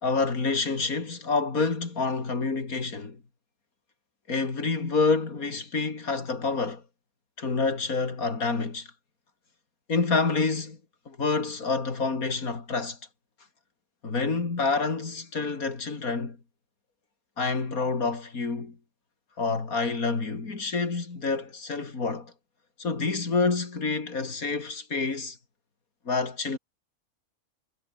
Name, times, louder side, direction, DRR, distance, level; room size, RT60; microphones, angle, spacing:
voice 1, 0.0-3.2 4.3-6.8 7.4-8.9 9.9-10.8 11.1-13.0 14.0-16.4 17.4-18.8 19.4-22.3 22.8-25.4 26.1-26.6, left 4 dB, 65° left, 3.5 m, -28 dB
omnidirectional pair, 1.6 m